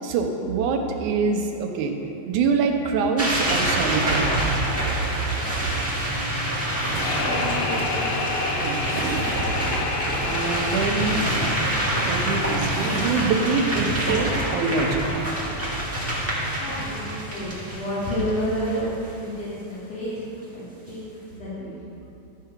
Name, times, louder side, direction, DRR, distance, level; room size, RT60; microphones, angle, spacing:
voice 1, 0.0-1.9 2.3-4.3 8.6-9.3 10.3-11.2 12.0-15.1, right 4 dB, 90° right, 3 dB, 2.3 m, -25 dB
sound 1, 3.2-19.1, right 1 dB, 15° right, 0.4 m, -26 dB
voice 2, 5.5-6.4 7.1-7.8 16.4-18.9 19.2-20.3 20.5-21.7, equal, 60° left, -12 dB, 3.0 m, -31 dB
Zipper (clothing), 6.6-9.8 10.1-10.2 10.6-10.7 10.9-13.4 13.6-13.7, right 3 dB, 60° right, 1.5 m, -36 dB
sound 2, 6.7-13.7, left 4 dB, 85° left, 2.1 m, -31 dB
12.5 x 4.7 x 5.8 m, 2.9 s
omnidirectional pair, 3.4 m